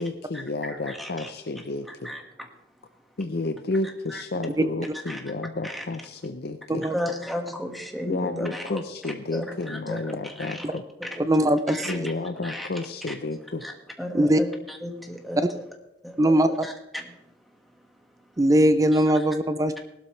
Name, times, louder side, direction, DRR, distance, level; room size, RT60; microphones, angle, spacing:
voice 1, 0.0-2.1 3.2-6.8 8.1-10.8 11.9-13.7, left 2 dB, 60° left, 7 dB, 0.7 m, -31 dB
voice 2, 0.7-1.3 1.9-2.2 4.1-4.2 5.1-5.2 5.6-5.8 6.9-10.7 11.0-12.1 12.4-12.7 13.1-13.2 13.6-15.6 16.0-17.2 18.9-19.0, left 1 dB, ahead, 2 dB, 1.7 m, -35 dB
voice 3, 11.3-12.1 14.1-14.4 15.4-15.5 16.2-16.7 18.4-19.8, right 1 dB, 20° right, 11 dB, 0.5 m, -21 dB
18.5 x 12.5 x 3.2 m, 0.86 s
head